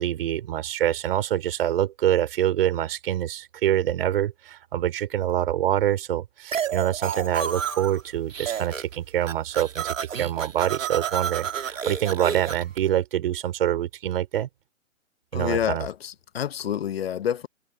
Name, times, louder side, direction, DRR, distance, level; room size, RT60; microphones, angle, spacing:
voice 1, 0.0-14.5 15.3-15.8, right 11 dB, 45° right, 4.8 m, -25 dB
sound 1, 6.5-8.0 8.3-9.0 9.2-12.8, right 7 dB, 70° right, 3.0 m, -30 dB
voice 2, 15.3-17.5, left 9 dB, 50° left, 1.3 m, -28 dB
figure-of-eight pair, 140°, 40 cm